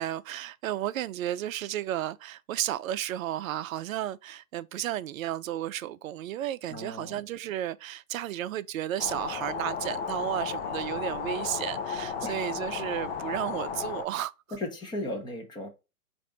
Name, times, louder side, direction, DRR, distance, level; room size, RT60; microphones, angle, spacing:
voice 1, 0.0-14.3, right 12 dB, 65° right, 0.5 m, -33 dB
voice 2, 6.7-7.2 12.2-12.3 14.5-15.7, left 1 dB, 10° left, 0.8 m, -36 dB
sound 1, 9.0-14.0, left 6 dB, 40° left, 0.6 m, -34 dB
4.2 x 2.6 x 4.8 m
hypercardioid pair, 130°, 45 cm